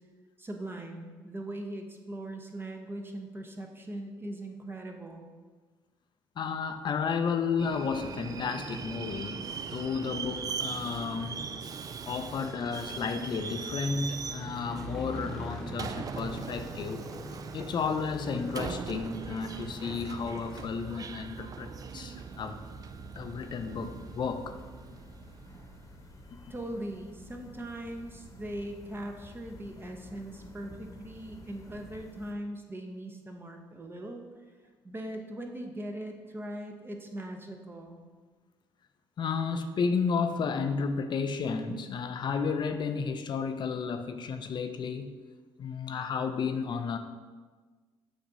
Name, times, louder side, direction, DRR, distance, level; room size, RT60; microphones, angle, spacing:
voice 1, 0.4-5.3 26.5-34.2 34.8-38.0, right 1 dB, 25° right, 3 dB, 0.7 m, -40 dB
voice 2, 6.4-9.4 9.7-11.4 12.0-17.0 17.5-22.6 23.2-24.6 39.2-45.1 45.6-47.0, left 5 dB, 50° left, 8 dB, 0.5 m, -32 dB
Subway metro underground, 7.6-26.0, right 6 dB, 40° right, 0.3 m, -41 dB
Motorcycle, 8.1-20.7, equal, ahead, 1.0 m, -45 dB
sound 1, 18.4-32.3, left 1 dB, 35° left, 1.0 m, -51 dB
7.1 x 2.5 x 5.4 m, 1.4 s
supercardioid pair, 70°, 10 cm